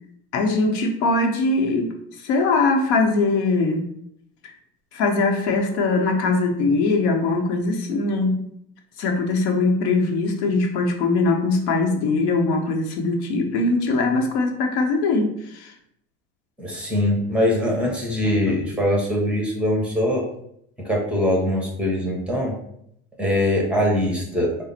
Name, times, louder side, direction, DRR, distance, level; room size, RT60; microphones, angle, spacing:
voice 1, 0.3-1.9 2.2-3.8 4.4-4.5 4.9-8.5 9.0-15.7, left 3 dB, 85° left, 3 dB, 0.8 m, -21 dB
voice 2, 16.6-20.2 20.8-22.5 23.2-24.5, left 1 dB, 5° right, -1 dB, 1.1 m, -22 dB
4.9 x 2.0 x 4.1 m, 0.72 s
supercardioid pair, 120°, 33 cm